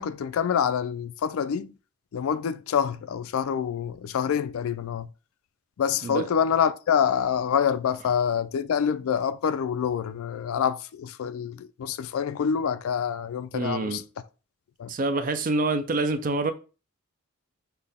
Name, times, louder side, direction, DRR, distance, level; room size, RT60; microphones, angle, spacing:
voice 1, 0.0-1.7 2.1-5.1 5.8-14.0 14.8-14.9, left 7 dB, 75° left, 0.3 m, -26 dB
voice 2, 13.5-14.0 14.9-16.5, right 3 dB, 40° right, 0.4 m, -26 dB
5.7 x 2.2 x 3.5 m
head